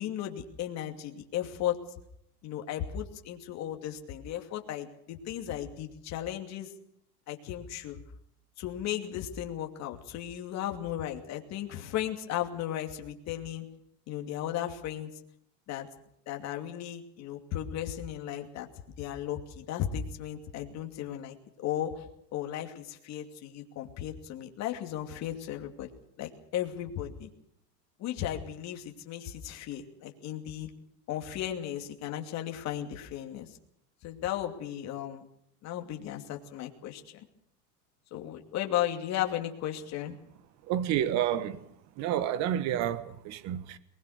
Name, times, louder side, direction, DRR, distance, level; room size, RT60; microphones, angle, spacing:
voice 1, 0.0-1.8 2.4-6.7 7.3-8.0 8.6-13.7 14.1-15.1 15.7-15.9 16.3-18.7 19.0-22.0 22.3-25.9 26.2-27.3 28.0-30.7 31.1-33.5 34.0-35.2 35.6-37.0 38.1-40.2, left 11 dB, 35° left, 2.6 m, -35 dB
voice 2, 40.7-41.6 42.0-43.8, right 10 dB, 35° right, 1.3 m, -29 dB
22.0 x 20.5 x 6.6 m
supercardioid pair, 155°, 49 cm